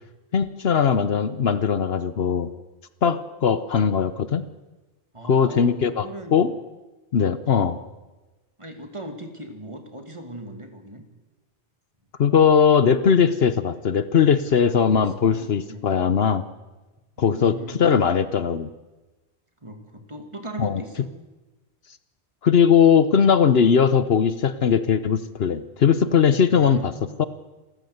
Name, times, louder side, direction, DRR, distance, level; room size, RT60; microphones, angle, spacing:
voice 1, 0.3-2.5 3.0-4.4 5.3-6.1 6.3-6.5 7.1-7.7 12.2-16.4 17.2-18.7 20.6-20.8 22.4-26.9 27.2-27.3, left 7 dB, 65° left, 13 dB, 1.1 m, -19 dB
voice 2, 5.1-6.5 7.4-7.8 8.6-11.0 14.5-15.8 17.2-17.9 19.6-21.1 26.5-27.1, right 1 dB, 25° right, 5 dB, 2.3 m, -39 dB
28.0 x 14.5 x 8.0 m, 1.2 s
omnidirectional pair, 1.2 m